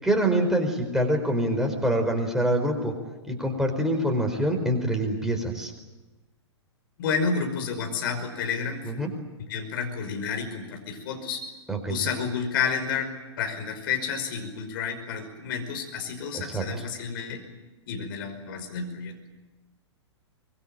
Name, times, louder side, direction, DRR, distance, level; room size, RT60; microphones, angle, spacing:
voice 1, 0.0-2.9 3.3-5.7 8.8-9.1 11.7-12.0 16.3-16.6, right 1 dB, 5° right, 2 dB, 4.8 m, -25 dB
voice 2, 7.0-9.1 9.5-11.4 11.9-13.1 13.4-17.4 17.9-19.1, left 6 dB, 50° left, 5 dB, 5.5 m, -30 dB
25.0 x 22.0 x 8.9 m, 1.2 s
figure-of-eight pair, 105°, 15 cm